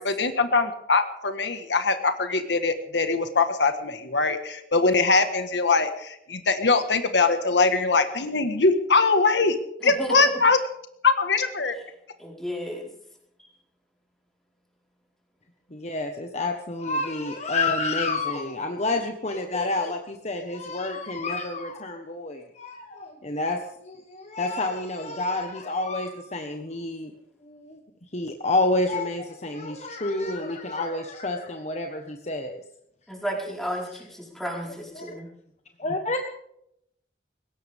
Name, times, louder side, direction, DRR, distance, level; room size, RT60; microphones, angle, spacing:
voice 1, 0.0-9.5 9.8-10.6 11.0-11.7, left 3 dB, 90° left, 8 dB, 1.7 m, -22 dB
voice 2, 9.8-10.2 12.2-12.9 33.1-35.3, equal, ahead, -2 dB, 4.9 m, -33 dB
voice 3, 15.7-27.1 27.4-27.8 28.1-32.6 34.9-35.1 35.8-36.2, left 2 dB, 40° left, 4 dB, 1.4 m, -29 dB
21.0 x 17.5 x 3.7 m, 0.75 s
head